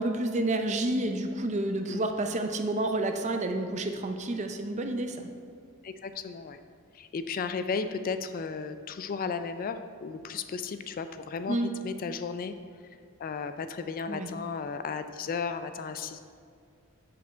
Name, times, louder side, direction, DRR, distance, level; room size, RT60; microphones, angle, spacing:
voice 1, 0.0-5.3 11.5-11.7 14.1-14.3, right 2 dB, 35° right, 6 dB, 0.5 m, -29 dB
voice 2, 5.8-6.6 6.9-12.5 13.2-16.2, left 5 dB, 40° left, 10 dB, 0.3 m, -34 dB
6.8 x 5.1 x 5.4 m, 2.3 s
head